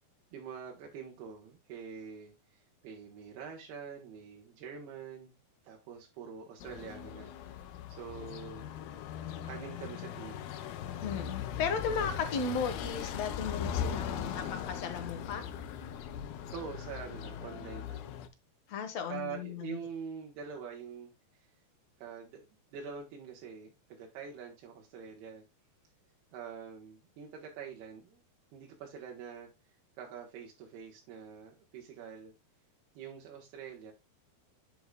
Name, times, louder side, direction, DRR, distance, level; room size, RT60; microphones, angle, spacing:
voice 1, 0.3-5.3 5.6-7.6 7.9-8.7 9.4-10.5 16.5-18.2 19.1-21.1 21.4-21.5 22.0-22.4 22.7-25.4 26.3-28.2 28.5-29.5 30.0-32.3 32.9-33.9, right 6 dB, 90° right, 3.3 m, -45 dB
sound 1, 6.6-18.3, left 8 dB, 80° left, 2.8 m, -39 dB
voice 2, 11.0-15.4 18.7-19.8, left 5 dB, 60° left, 1.9 m, -35 dB
8.5 x 7.9 x 2.3 m
omnidirectional pair, 4.4 m